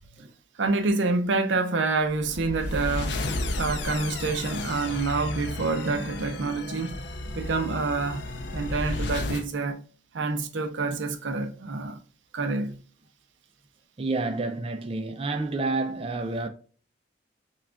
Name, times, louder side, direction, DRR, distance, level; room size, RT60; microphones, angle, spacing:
voice 1, 0.6-3.2 3.6-7.0 7.3-8.2 8.5-9.8 10.1-12.0 12.3-12.8, right 3 dB, 85° right, 0.6 m, -27 dB
sound 1, 2.1-9.5, left 2 dB, 65° left, 0.6 m, -33 dB
voice 2, 14.0-16.5, right 3 dB, 30° right, 0.4 m, -29 dB
5.6 x 2.4 x 2.3 m
head